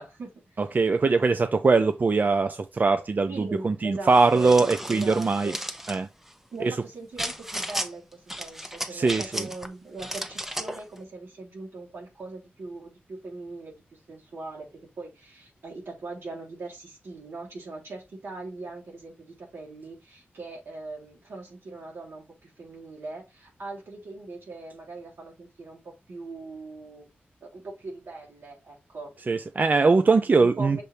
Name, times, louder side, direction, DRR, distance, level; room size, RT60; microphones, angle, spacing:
voice 1, 0.0-0.6 3.3-5.6 6.5-27.1 27.4-29.1 30.3-30.8, right 3 dB, 80° right, 3.3 m, -40 dB
voice 2, 0.6-5.5 5.9-6.1 6.6-6.7 8.9-9.5 29.3-30.8, right 4 dB, 45° right, 0.5 m, -22 dB
sound 1, 4.1-6.0 7.2-7.9 8.3-9.7 10.0-10.8, equal, 10° right, 0.9 m, -34 dB
6.7 x 3.4 x 4.2 m
wide cardioid pair, 70°, 4 cm